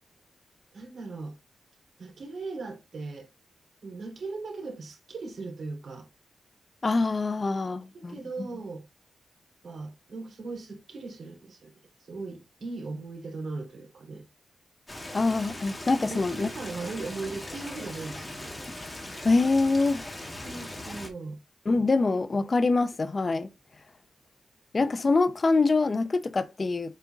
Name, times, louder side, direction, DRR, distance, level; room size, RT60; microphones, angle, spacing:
voice 1, 0.7-1.4 2.0-3.3 3.8-6.1 7.7-8.8 9.6-11.7 12.1-14.2 15.9-18.6 20.4-21.4, right 3 dB, 65° right, 3.3 m, -38 dB
voice 2, 6.8-8.5 15.1-16.5 19.2-20.0 21.7-23.5 24.7-27.0, left 3 dB, 35° left, 0.5 m, -25 dB
Stream, 14.9-21.1, left 1 dB, 15° left, 2.0 m, -39 dB
8.2 x 5.2 x 2.3 m
wide cardioid pair, 135°, 0 cm